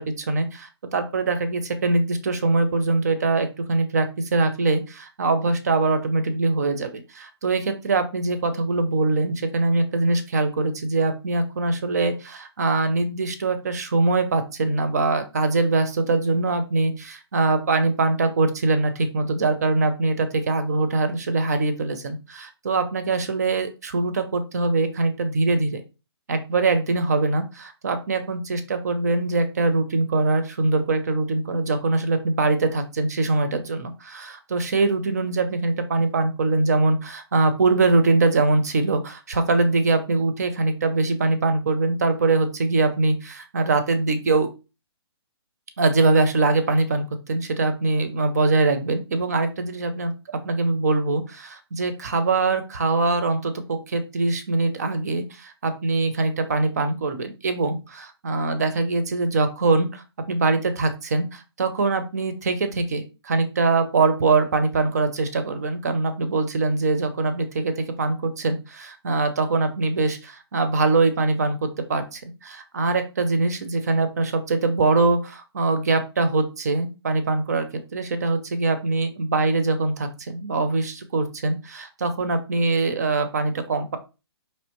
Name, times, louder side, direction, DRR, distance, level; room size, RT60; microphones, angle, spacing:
voice 1, 0.0-4.1 4.3-25.8 26.3-44.5 45.8-50.1 50.4-84.0, right 3 dB, 35° right, 9 dB, 0.5 m, -23 dB
4.3 x 3.0 x 3.0 m, 0.29 s
hypercardioid pair, 180°, 14 cm